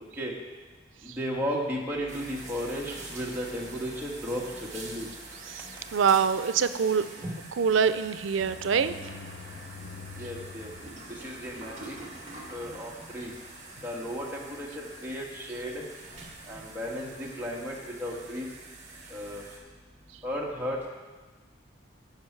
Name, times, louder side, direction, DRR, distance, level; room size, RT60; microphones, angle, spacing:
voice 1, 1.2-4.4 4.7-5.1 10.2-10.7 11.2-12.0 12.5-13.3 13.8-15.8 16.5-18.5 19.1-19.4 20.2-20.9, equal, 10° right, -4 dB, 1.5 m, -34 dB
sound 1, 2.1-19.6, right 2 dB, 35° right, 1.7 m, -45 dB
voice 2, 5.9-7.1 7.5-8.9, right 6 dB, 90° right, 13 dB, 0.5 m, -24 dB
sound 2, 6.5-14.6 15.1-15.2 15.5-15.6 15.9-16.1, left 4 dB, 65° left, 0.8 m, -48 dB
15.5 x 5.4 x 4.6 m, 1.3 s
head